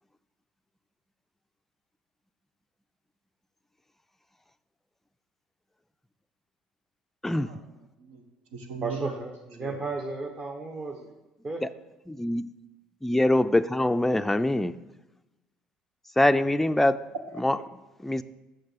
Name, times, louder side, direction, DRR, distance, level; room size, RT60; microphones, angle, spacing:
voice 1, 7.4-8.2 8.5-9.1 9.6-9.9 17.3-17.6, right 4 dB, 75° right, 4 dB, 1.1 m, -40 dB
voice 2, 8.8-11.2 11.4-11.6, right 3 dB, 35° right, 1 dB, 1.1 m, -34 dB
voice 3, 12.1-12.4 13.0-14.7 16.2-17.0 17.4-17.6 18.0-18.2, left 1 dB, 5° left, 10 dB, 0.4 m, -23 dB
6.7 x 6.5 x 6.6 m, 1.0 s
hypercardioid pair, 65°, 4 cm